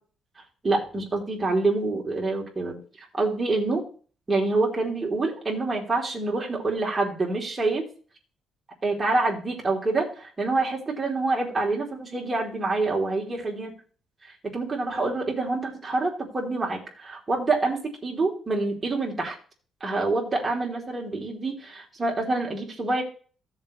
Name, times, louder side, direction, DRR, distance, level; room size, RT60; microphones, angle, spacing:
voice 1, 0.6-3.8 4.3-7.9 8.8-13.7 14.2-19.3 19.8-23.0, right 3 dB, 25° right, -1 dB, 3.3 m, -26 dB
16.0 x 7.4 x 3.2 m, 0.41 s
cardioid pair, 90°, 0 cm